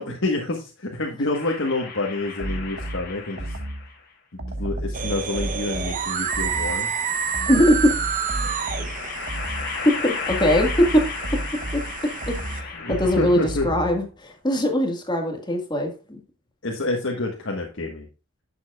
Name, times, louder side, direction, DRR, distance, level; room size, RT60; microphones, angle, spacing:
voice 1, 0.0-3.5 4.6-6.9 8.4-8.5 12.7-13.7 16.6-18.0, left 2 dB, 60° left, 0 dB, 1.5 m, -28 dB
sound 1, 1.3-4.0 5.1-6.1 7.7-13.7, left 5 dB, 45° left, 2.3 m, -35 dB
sound 2, 2.4-3.9 4.4-6.9 7.3-9.8 10.3-14.1, right 1 dB, 65° right, 1.7 m, -32 dB
sound 3, 4.9-12.6, right 6 dB, 40° right, 0.8 m, -29 dB
voice 2, 7.5-7.9 10.0-10.8 11.7-11.8 12.3-15.9, left 1 dB, 20° left, 3 dB, 1.7 m, -21 dB
11.0 x 7.2 x 2.4 m, 0.32 s
head